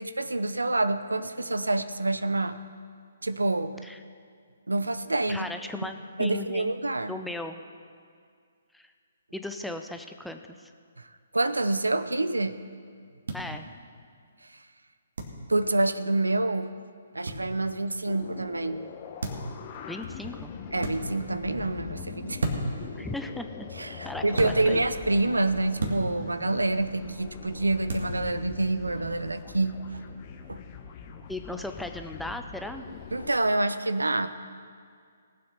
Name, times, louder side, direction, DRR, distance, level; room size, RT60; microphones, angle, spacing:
voice 1, 0.0-2.6 3.2-3.8 4.7-5.5 6.2-7.1 11.0-11.1 11.3-12.6 15.5-16.7 17.1-18.9 20.7-22.4 23.8-30.0 30.5-30.6 33.1-34.3, right 2 dB, 85° right, 12 dB, 0.7 m, -27 dB
voice 2, 5.3-6.7 7.1-7.6 8.7-8.9 9.3-10.7 13.3-13.7 19.9-20.5 22.9-23.7 24.0-24.8 31.3-32.9, left 1 dB, ahead, 6 dB, 0.6 m, -37 dB
sound 1, 13.3-13.4 15.2-15.4 17.3-17.4 19.2-19.5 20.8-21.0 22.4-22.8 24.3-24.6 25.8-26.0 27.9-28.1, right 2 dB, 65° right, 1.9 m, -30 dB
sound 2, 18.1-33.3, left 7 dB, 35° left, 1.1 m, -42 dB
19.0 x 7.7 x 5.8 m, 2.2 s
figure-of-eight pair, 135°, 0 cm